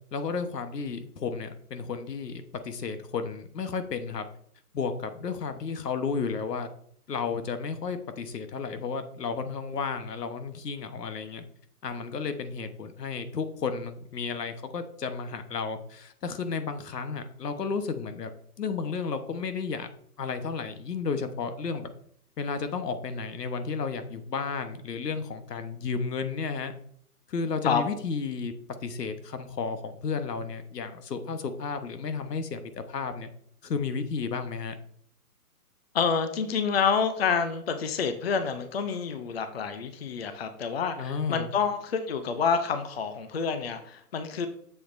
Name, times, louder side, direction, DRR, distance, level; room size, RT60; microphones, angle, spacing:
voice 1, 0.1-4.2 4.7-6.7 7.1-11.4 11.8-18.3 18.6-19.9 20.2-21.9 22.4-26.7 27.3-28.5 28.8-33.3 33.6-34.7 41.0-41.5, left 5 dB, 85° left, 9 dB, 1.2 m, -32 dB
voice 2, 35.9-44.5, left 6 dB, 40° left, 9 dB, 0.6 m, -28 dB
8.1 x 7.0 x 2.6 m, 0.64 s
hypercardioid pair, 165°, 47 cm